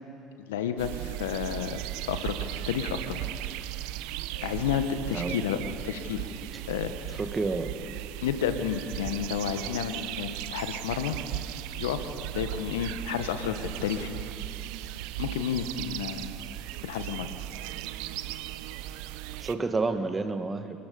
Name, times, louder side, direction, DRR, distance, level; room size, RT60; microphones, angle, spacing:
voice 1, 0.4-3.2 4.4-5.6 5.8-6.3 6.7-7.2 8.2-11.2 11.8-14.1 15.2-16.3 16.8-17.3, left 8 dB, 80° left, 9 dB, 1.4 m, -31 dB
sound 1, 0.8-19.6, right 15 dB, 70° right, 0.7 m, -37 dB
voice 2, 5.1-5.5 7.1-7.8 19.4-20.9, right 3 dB, 25° right, 8 dB, 1.8 m, -30 dB
28.5 x 19.0 x 5.5 m, 2.7 s
hypercardioid pair, 65°, 0 cm